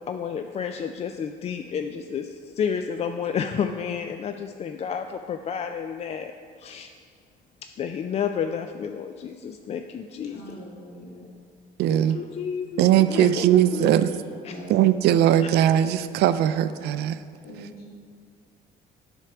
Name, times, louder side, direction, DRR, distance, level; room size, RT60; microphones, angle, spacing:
voice 1, 0.1-6.3 6.6-6.9 7.6-10.5 11.9-13.9 14.4-14.5 15.4-15.5, left 7 dB, 40° left, 7 dB, 0.4 m, -31 dB
voice 2, 10.2-11.3 13.7-13.8 14.1-14.2 14.4-14.9 17.4-17.9, equal, 65° left, -3 dB, 2.3 m, -41 dB
voice 3, 11.8-12.2 12.8-14.1 14.7-17.2, right 11 dB, 75° right, 13 dB, 0.4 m, -20 dB
9.9 x 4.5 x 5.9 m, 2.1 s
cardioid pair, 110°, 17 cm